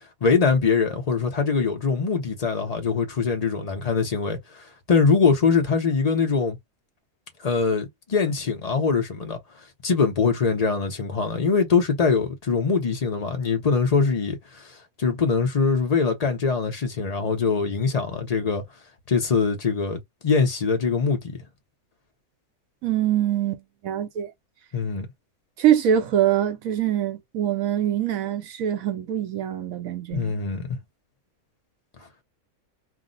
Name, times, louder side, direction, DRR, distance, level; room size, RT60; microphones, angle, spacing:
voice 1, 0.2-6.6 7.4-9.4 9.8-14.6 15.0-18.6 19.1-21.4 24.7-25.1 30.1-30.8, left 5 dB, 40° left, 0.5 m, -23 dB
voice 2, 22.8-24.3 25.6-30.3, right 10 dB, 70° right, 1.0 m, -24 dB
2.5 x 2.0 x 3.7 m
omnidirectional pair, 1.6 m